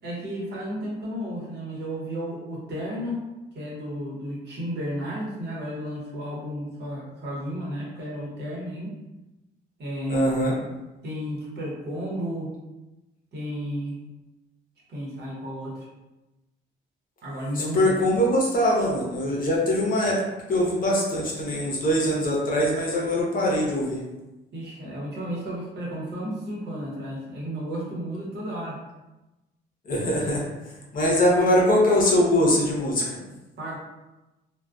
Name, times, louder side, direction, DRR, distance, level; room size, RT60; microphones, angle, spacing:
voice 1, 0.0-3.2 3.5-8.9 9.8-10.3 11.0-12.5 13.3-14.0 14.9-15.9 17.2-17.9 24.5-28.8 33.6-33.8, equal, 60° right, -5 dB, 1.0 m, -33 dB
voice 2, 10.1-10.6 17.6-20.2 20.5-24.0 29.8-33.2, left 1 dB, 45° left, -3 dB, 0.8 m, -22 dB
2.3 x 2.2 x 2.4 m, 1.0 s
cardioid pair, 90°, 20 cm